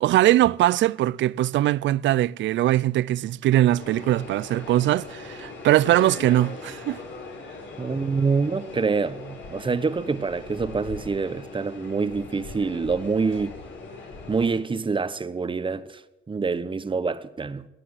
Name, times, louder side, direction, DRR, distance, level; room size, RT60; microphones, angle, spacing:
voice 1, 0.0-7.0, right 14 dB, 70° right, 0.4 m, -21 dB
sound 1, 3.7-14.6, left 3 dB, 70° left, 4.6 m, -40 dB
voice 2, 7.8-13.6 14.3-16.0 16.3-17.7, right 4 dB, 25° right, 1.0 m, -26 dB
15.5 x 10.0 x 7.9 m
cardioid pair, 90°, 20 cm